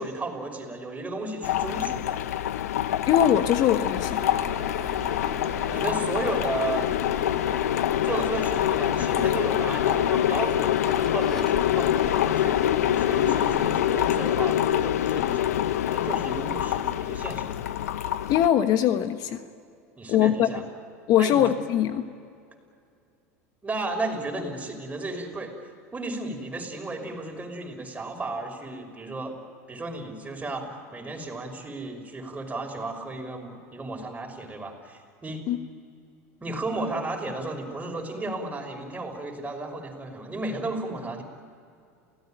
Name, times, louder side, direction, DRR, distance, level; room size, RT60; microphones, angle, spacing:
voice 1, 0.0-2.2 5.7-6.9 7.9-17.7 20.0-20.6 21.2-21.5 23.6-25.5 25.9-29.4 29.7-35.4 36.4-41.2, right 2 dB, 15° right, 2 dB, 5.9 m, -34 dB
sound 1, 1.4-18.5, left 12 dB, 80° left, 0.8 m, -25 dB
voice 2, 3.1-4.2 18.3-19.4 20.1-20.5 21.1-22.1 35.5-35.6, left 10 dB, 55° left, 10 dB, 1.3 m, -21 dB
sound 2, 3.9-13.8, right 1 dB, 5° left, 2.4 m, -39 dB
29.0 x 17.5 x 9.1 m, 2.3 s
hypercardioid pair, 90°, 8 cm